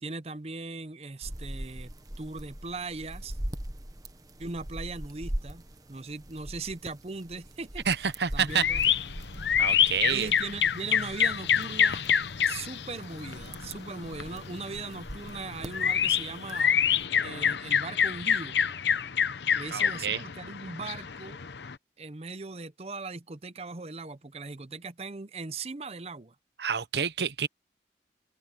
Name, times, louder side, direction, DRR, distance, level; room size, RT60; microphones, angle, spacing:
voice 1, 0.0-1.9 2.2-3.4 4.4-5.6 5.9-7.9 8.3-8.8 10.1-12.0 12.5-16.8 17.2-18.6 19.5-21.4 22.0-26.3, right 3 dB, 35° right, 0.7 m, -39 dB
sound 1, 1.2-17.0, right 1 dB, 20° right, 1.2 m, -42 dB
voice 2, 7.9-8.7 9.6-10.3 19.7-20.2 26.6-27.5, right 7 dB, 75° right, 0.8 m, -28 dB
sound 2, 8.5-21.7, left 8 dB, 80° left, 0.8 m, -27 dB
open air
head